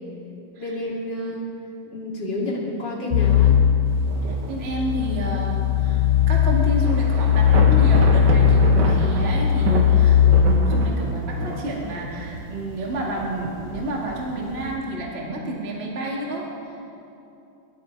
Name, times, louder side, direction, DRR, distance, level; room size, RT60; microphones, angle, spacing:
voice 1, 0.6-1.5 1.9-3.6, left 1 dB, 35° left, -5 dB, 3.0 m, -29 dB
sound 1, 3.1-10.4, left 8 dB, 80° left, 2.5 m, -18 dB
Thunder / Rain, 3.9-14.8, right 2 dB, 65° right, 2.6 m, -30 dB
voice 2, 4.2-16.9, right 1 dB, 25° right, -3 dB, 1.7 m, -30 dB
22.5 x 13.0 x 4.7 m, 2.8 s
omnidirectional pair, 3.9 m